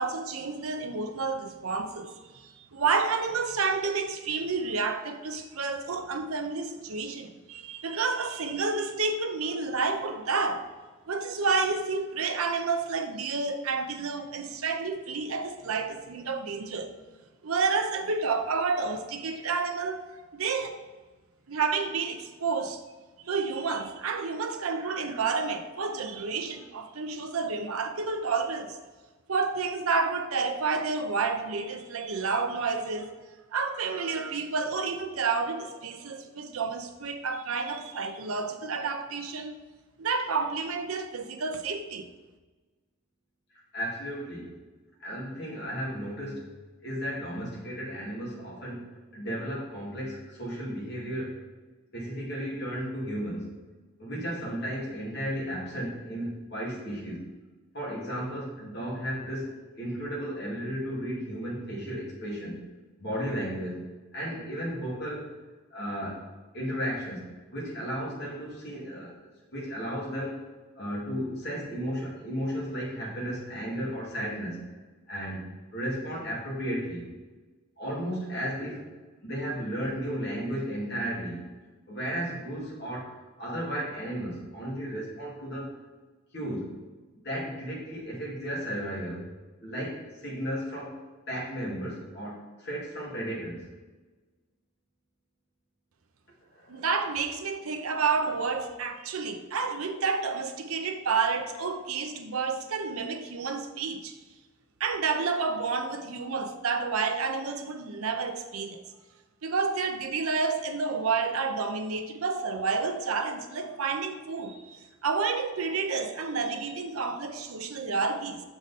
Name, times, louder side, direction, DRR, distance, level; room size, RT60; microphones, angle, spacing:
voice 1, 0.0-10.7 11.1-17.0 17.4-20.1 20.3-20.8 21.5-22.8 23.2-28.8 29.3-33.2 33.5-39.6 40.0-42.1 96.7-104.1 104.8-108.8 109.4-118.4, right 4 dB, 90° right, 0.7 m, -30 dB
voice 2, 43.7-44.5 45.0-46.5 46.8-51.4 51.9-53.5 54.0-57.3 57.7-62.6 63.0-63.8 64.1-65.3 65.7-66.3 66.5-67.2 67.5-69.1 69.5-70.4 70.8-74.6 75.1-75.4 75.7-77.1 77.8-78.9 79.2-81.4 81.9-85.7 86.3-86.7 87.2-89.3 89.6-91.0 91.3-93.7 96.5-96.9, equal, 50° left, 2.2 m, -34 dB
6.4 x 5.0 x 4.1 m
head